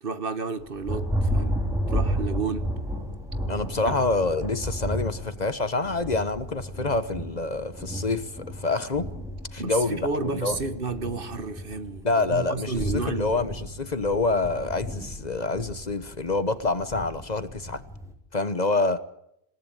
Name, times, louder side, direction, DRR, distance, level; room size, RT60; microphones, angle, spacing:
voice 1, 0.0-1.6 1.9-2.7 3.8-4.0 9.6-13.3, right 4 dB, 60° right, 1.6 m, -31 dB
Thunder, 0.6-18.1, equal, 5° right, 4.5 m, -33 dB
voice 2, 3.5-9.1 9.5-10.6 12.0-17.8 18.3-19.0, left 3 dB, 40° left, 1.2 m, -27 dB
27.5 x 17.5 x 9.0 m
omnidirectional pair, 1.1 m